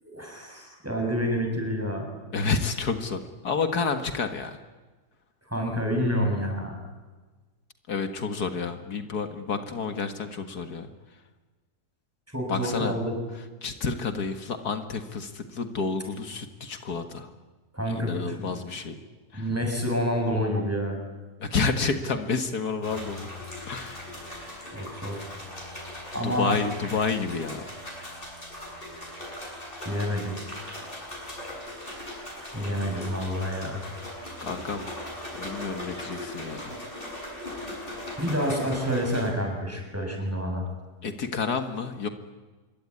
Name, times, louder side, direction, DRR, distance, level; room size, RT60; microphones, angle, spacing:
voice 1, 0.0-2.1 5.5-6.8 12.3-13.2 17.7-18.5 19.3-21.0 24.7-25.2 26.1-26.6 29.8-30.4 32.5-33.8 38.2-40.7, equal, 10° right, 2 dB, 7.0 m, -28 dB
voice 2, 2.3-4.6 7.9-10.9 12.5-12.9 13.6-17.3 17.9-19.0 19.3-19.5 21.4-23.3 23.7-24.1 26.2-27.6 34.4-34.9 35.3-36.8 41.0-42.1, left 5 dB, 80° left, 7 dB, 2.3 m, -30 dB
sound 1, 22.8-39.3, left 1 dB, 35° left, 7.7 m, -39 dB
26.5 x 22.5 x 9.8 m, 1.3 s
omnidirectional pair, 1.6 m